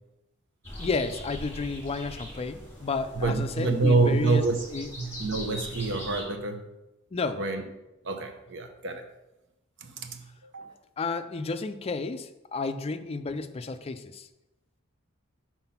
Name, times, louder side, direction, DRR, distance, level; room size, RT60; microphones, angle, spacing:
sound 1, 0.6-6.2, left 1 dB, 15° left, 2.3 m, -42 dB
voice 1, 0.8-4.4 4.7-4.9 7.1-7.4 10.6-10.7 11.0-14.3, left 4 dB, 30° left, 0.4 m, -32 dB
voice 2, 3.2-4.6 5.0-6.6 7.4-7.6 8.0-9.0 9.8-10.6, right 3 dB, 60° right, 0.8 m, -27 dB
5.9 x 4.4 x 5.7 m
head